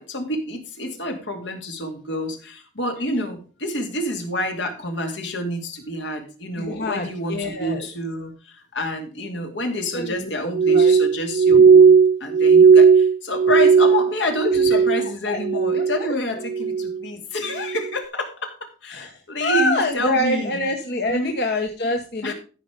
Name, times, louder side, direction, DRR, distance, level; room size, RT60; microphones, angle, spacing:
voice 1, 0.0-20.6 21.1-21.3 22.2-22.3, left 1 dB, 75° left, 4 dB, 2.5 m, -28 dB
voice 2, 6.6-7.9 9.9-10.3 10.7-10.9 11.5-11.7 14.4-15.4 15.7-16.1 17.5-17.7 18.9-22.3, left 1 dB, 55° left, 4 dB, 1.1 m, -26 dB
Glass, 10.5-15.1 15.4-16.1 16.4-17.0 17.6-17.9, right 5 dB, 55° right, 0.4 m, -15 dB
13.5 x 5.3 x 5.2 m, 0.37 s
head